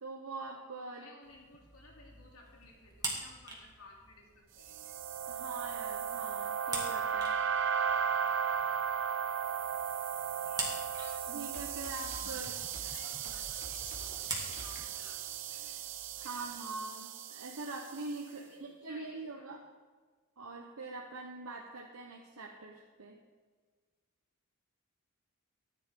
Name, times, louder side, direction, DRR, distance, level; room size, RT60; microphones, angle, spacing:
voice 1, 0.0-1.1 5.3-7.3 11.3-12.6 16.2-19.6 20.4-23.2, right 3 dB, 80° right, 1 dB, 1.0 m, -43 dB
voice 2, 0.9-4.9 12.2-14.2 14.6-15.8 16.1-16.7 18.3-19.5, left 2 dB, 75° left, -2 dB, 3.0 m, -58 dB
sound 1, 1.2-16.6, right 3 dB, 20° right, 2.2 m, -46 dB
sound 2, 4.6-18.0, right 7 dB, 60° right, 0.6 m, -36 dB
sound 3, 10.5-14.8, left 1 dB, 35° left, 3.0 m, -49 dB
14.5 x 10.5 x 3.7 m, 1.5 s
head